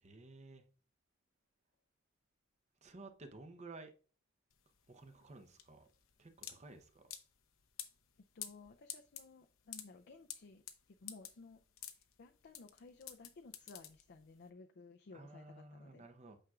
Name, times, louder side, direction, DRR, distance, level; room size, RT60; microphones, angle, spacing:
voice 1, 0.0-0.6 2.8-3.9 4.9-5.9 6.2-7.0 15.1-16.4, right 2 dB, 35° right, 0.8 m, -54 dB
sound 1, 4.5-14.4, left 11 dB, 90° left, 0.8 m, -50 dB
voice 2, 8.3-10.6 11.0-11.6 12.2-16.1, left 3 dB, 55° left, 0.5 m, -56 dB
8.8 x 6.2 x 2.4 m
head